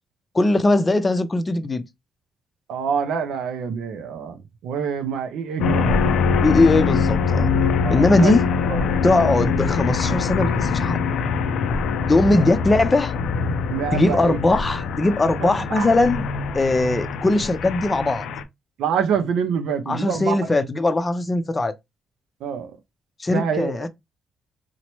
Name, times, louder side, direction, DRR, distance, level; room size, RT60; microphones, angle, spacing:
voice 1, 0.3-1.8 6.4-7.5 7.9-8.4 9.0-11.0 12.1-13.1 13.9-16.3 16.5-18.3 19.9-21.7 23.2-23.9, left 2 dB, 25° left, 0.5 m, -20 dB
voice 2, 2.7-6.3 7.8-8.4 8.7-8.9 12.4-12.5 13.5-14.4 15.4-15.9 18.8-20.5 22.4-22.8 23.3-23.8, right 7 dB, 80° right, 0.5 m, -26 dB
sound 1, 5.6-18.4, left 5 dB, 80° left, 0.4 m, -23 dB
2.9 x 2.1 x 3.0 m
cardioid pair, 90°, 0 cm